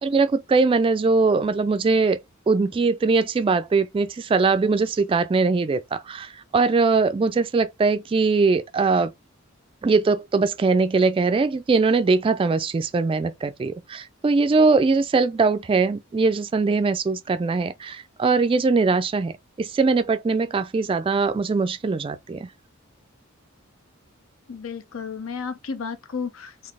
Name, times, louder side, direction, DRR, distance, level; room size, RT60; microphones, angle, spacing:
voice 1, 0.0-2.2 2.5-9.1 9.8-22.5, right 4 dB, 25° right, 0.3 m, -21 dB
voice 2, 24.5-26.7, left 5 dB, 85° left, 0.7 m, -33 dB
3.9 x 2.8 x 3.5 m
head